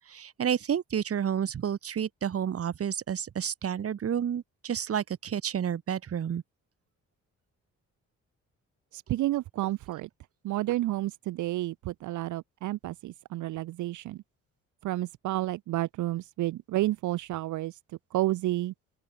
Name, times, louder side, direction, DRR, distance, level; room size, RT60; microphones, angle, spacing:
voice 1, 0.1-6.4, right 8 dB, 50° right, 1.9 m, -30 dB
voice 2, 8.9-10.1 10.4-14.2 14.8-18.7, right 16 dB, 75° right, 0.7 m, -31 dB
open air
cardioid pair, 90°, 30 cm